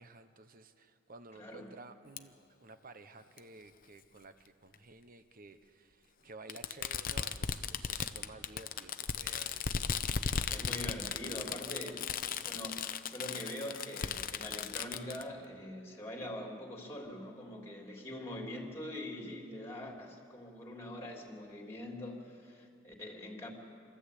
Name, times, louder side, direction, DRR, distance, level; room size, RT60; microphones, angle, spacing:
voice 1, 0.0-10.2, right 3 dB, 45° right, 10 dB, 1.1 m, -54 dB
voice 2, 1.3-1.7 10.5-12.0 12.4-23.5, left 1 dB, 15° left, 0 dB, 3.0 m, -43 dB
Fireworks, 2.2-2.3 3.4-3.5 4.7-4.8 6.5-15.2, left 6 dB, 45° left, 0.7 m, -36 dB
27.0 x 13.5 x 8.4 m, 2.5 s
head